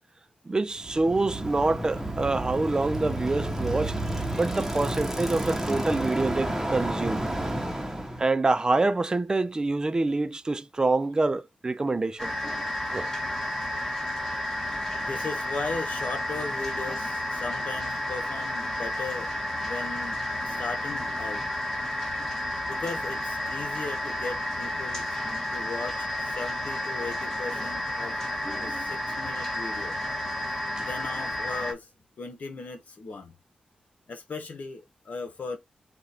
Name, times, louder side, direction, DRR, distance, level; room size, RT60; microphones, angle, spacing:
voice 1, 0.5-4.0 4.3-7.3 8.2-12.3 12.9-13.1 30.8-30.9, right 3 dB, 25° right, 0.4 m, -26 dB
Bicycle, 0.8-8.3, right 1 dB, 10° right, 1.1 m, -31 dB
sound 1, 12.2-31.7, left 1 dB, 15° left, 1.5 m, -31 dB
voice 2, 15.0-19.3 19.6-21.5 22.6-25.0 25.5-28.2 28.6-30.0 30.8-31.9 32.2-33.3 34.1-35.6, left 4 dB, 65° left, 1.3 m, -37 dB
4.1 x 2.6 x 4.2 m
wide cardioid pair, 90°, 3 cm